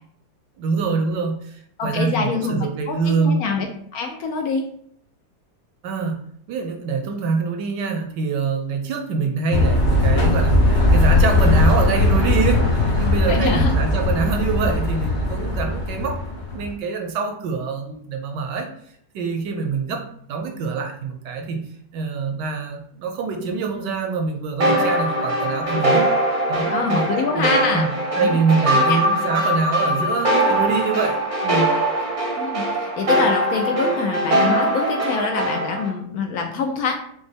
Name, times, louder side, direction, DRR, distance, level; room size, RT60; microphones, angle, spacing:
voice 1, 0.6-3.4 5.8-6.2 6.5-16.2 16.5-18.7 19.1-20.0 20.3-21.6 21.9-26.0 26.5-27.9 28.2-31.7, right 5 dB, 75° right, 4 dB, 1.1 m, -25 dB
voice 2, 1.8-3.7 3.9-4.6 13.3-13.7 26.7-27.9 28.2-29.0 32.4-37.0, left 5 dB, 80° left, 3 dB, 0.8 m, -25 dB
sound 1, 9.5-16.7, left 2 dB, 50° left, 1.4 m, -19 dB
sound 2, 24.6-35.9, right 1 dB, 50° right, 0.6 m, -21 dB
5.0 x 2.1 x 3.3 m, 0.64 s
omnidirectional pair, 2.1 m